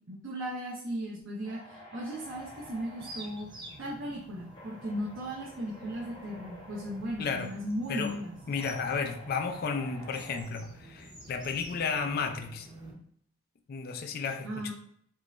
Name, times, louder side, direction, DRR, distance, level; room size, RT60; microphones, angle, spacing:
voice 1, 0.1-3.5 3.8-8.4 14.4-14.7, equal, 80° right, -6 dB, 0.8 m, -36 dB
sound 1, 1.4-10.4, equal, 25° left, 0.8 m, -51 dB
sound 2, 2.1-12.9, right 1 dB, 25° right, 0.7 m, -50 dB
voice 2, 7.2-7.5 7.9-8.1 8.5-12.7 13.7-14.7, left 5 dB, 50° left, 7 dB, 0.4 m, -33 dB
3.6 x 3.1 x 2.5 m, 0.66 s
head